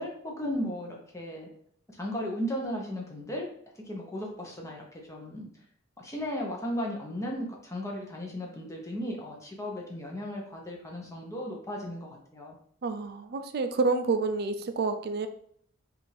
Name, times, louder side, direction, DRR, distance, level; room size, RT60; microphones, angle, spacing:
voice 1, 0.0-1.5 2.0-3.5 3.9-5.5 6.0-12.6, equal, 15° left, -1 dB, 0.8 m, -35 dB
voice 2, 12.8-15.3, right 3 dB, 45° right, 8 dB, 0.4 m, -28 dB
5.3 x 2.6 x 3.3 m, 0.64 s
head